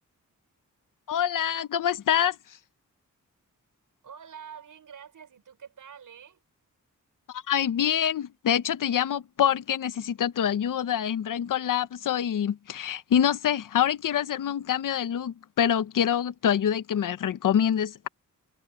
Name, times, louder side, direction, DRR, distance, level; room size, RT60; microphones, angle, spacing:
voice 1, 1.1-2.6 7.3-18.1, left 9 dB, 90° left, 0.8 m, -26 dB
voice 2, 4.0-6.4, right 8 dB, 80° right, 6.5 m, -46 dB
wide cardioid pair, 145°, 31 cm